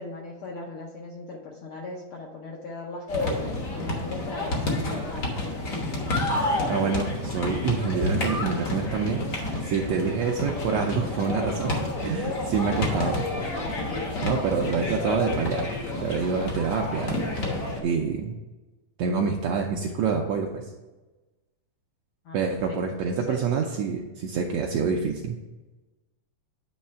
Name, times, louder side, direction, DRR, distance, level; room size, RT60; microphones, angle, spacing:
voice 1, 0.0-5.8 13.0-13.2 22.2-22.4 22.7-23.6, left 3 dB, 80° left, 0 dB, 1.2 m, -39 dB
sound 1, 3.1-17.8, left 2 dB, 65° left, 0.8 m, -29 dB
voice 2, 6.4-9.2 9.6-11.7 12.0-13.1 14.2-15.7 16.0-17.3 17.8-18.3 19.0-20.6 22.3-25.4, right 5 dB, 80° right, 1 dB, 1.6 m, -27 dB
9.3 x 3.2 x 5.6 m, 1.1 s
omnidirectional pair, 3.6 m